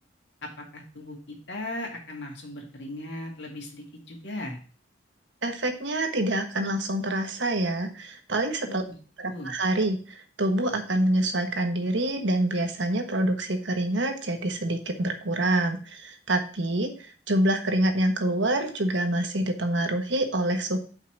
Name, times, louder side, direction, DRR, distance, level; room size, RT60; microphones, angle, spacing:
voice 1, 0.4-4.6 8.7-9.0 9.2-9.5, left 1 dB, 65° left, 0 dB, 2.1 m, -38 dB
voice 2, 5.4-8.8 9.2-20.8, right 1 dB, 70° right, 5 dB, 1.3 m, -26 dB
5.6 x 4.9 x 5.9 m, 0.39 s
head